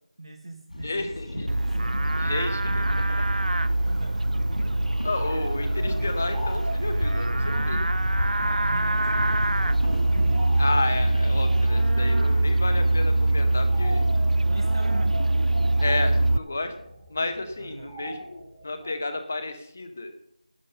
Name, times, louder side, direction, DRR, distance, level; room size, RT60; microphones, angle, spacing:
voice 1, 0.2-2.3 3.8-4.4 8.2-10.0 12.7-13.0 14.5-15.2 17.6-18.0, right 2 dB, 40° right, 7 dB, 0.8 m, -41 dB
sound 1, 0.7-12.5, left 1 dB, 85° left, 4.9 m, -35 dB
voice 2, 0.8-1.6 2.2-3.3 5.0-7.8 10.6-14.1 15.8-16.7 17.1-20.1, left 2 dB, 15° left, 9 dB, 0.5 m, -31 dB
Livestock farm animals working animals, 1.5-16.4, right 2 dB, 90° right, 0.5 m, -23 dB
sound 2, 4.5-18.9, equal, 5° right, 1.3 m, -42 dB
11.5 x 6.7 x 6.6 m, 0.77 s
figure-of-eight pair, 180°, 4 cm